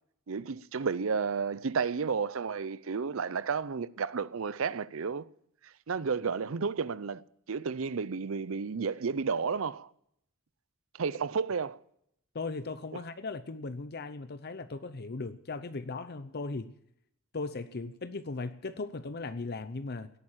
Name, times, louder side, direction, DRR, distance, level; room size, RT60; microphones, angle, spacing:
voice 1, 0.3-5.3 5.9-9.9 11.0-11.8, right 5 dB, 65° right, 0.6 m, -32 dB
voice 2, 12.3-16.7 17.3-20.1, left 3 dB, 50° left, 0.7 m, -38 dB
17.5 x 9.0 x 7.4 m
head